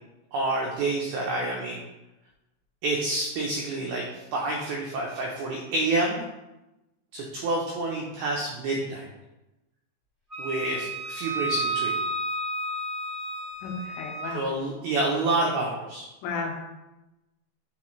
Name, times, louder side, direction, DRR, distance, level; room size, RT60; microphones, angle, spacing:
voice 1, 0.3-1.8 2.8-6.2 7.1-9.1 10.4-12.0 14.3-16.1, right 2 dB, 85° right, -2 dB, 2.1 m, -28 dB
Wind instrument woodwind instrument, 10.3-14.3, right 2 dB, 45° right, 0.8 m, -31 dB
voice 2, 13.6-14.4 16.2-16.6, left 4 dB, 80° left, 1 dB, 3.1 m, -33 dB
9.9 x 4.1 x 3.2 m, 0.99 s
omnidirectional pair, 5.5 m